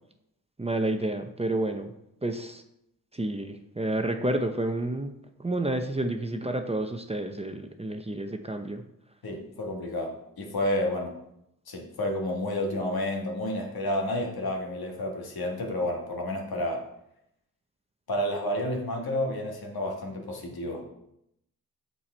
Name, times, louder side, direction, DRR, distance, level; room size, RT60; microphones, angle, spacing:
voice 1, 0.6-1.9 2.2-2.6 3.1-5.1 5.4-8.8, right 1 dB, 15° right, 6 dB, 0.7 m, -30 dB
voice 2, 9.2-11.1 11.7-16.8 18.1-20.8, left 1 dB, 75° left, 1 dB, 1.6 m, -30 dB
6.9 x 5.8 x 4.3 m, 0.79 s
cardioid pair, 55°, 37 cm